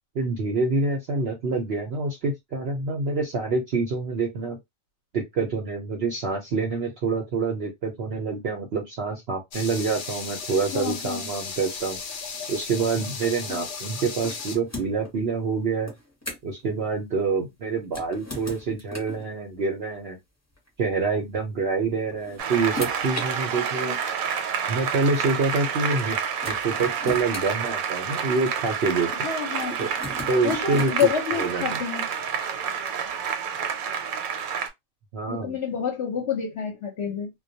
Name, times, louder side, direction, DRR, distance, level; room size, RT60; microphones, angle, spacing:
voice 1, 0.1-4.6 5.1-12.0 12.5-15.9 16.4-20.2 20.8-24.0 24.7-26.2 26.5-29.3 29.8-29.9 30.3-31.8 35.1-35.6, right 4 dB, 60° right, 0.7 m, -26 dB
sound 1, 9.5-14.6, left 5 dB, 80° left, 0.4 m, -35 dB
voice 2, 10.7-11.3 13.5-13.6 23.8-24.0 29.2-29.7 30.4-32.0 35.3-37.3, left 8 dB, 55° left, 0.9 m, -28 dB
sound 2, 14.2-15.1 15.9-16.6 17.8-19.2 20.5-20.7 21.8-23.3 24.2-24.3 26.0-26.1 26.4-28.3 29.6-31.2, left 2 dB, 15° left, 0.6 m, -37 dB
Applause, 22.4-34.7, right 7 dB, 75° right, 1.0 m, -29 dB
2.3 x 2.2 x 2.6 m
omnidirectional pair, 1.5 m